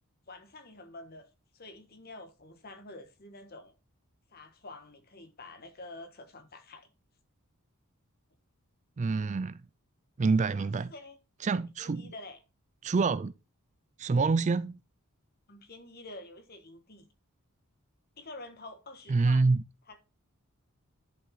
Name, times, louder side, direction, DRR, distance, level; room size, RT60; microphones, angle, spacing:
voice 1, 0.3-1.3 1.5-3.7 4.3-6.9 10.4-11.2 11.8-12.4 15.5-17.1 18.2-19.5 19.9-20.0, left 2 dB, 45° left, 1.5 m, -48 dB
voice 2, 9.0-9.6 10.2-10.9 11.4-12.1 12.8-13.3 14.0-14.8 19.1-19.6, right 4 dB, 30° right, 0.4 m, -26 dB
10.5 x 5.7 x 3.9 m
head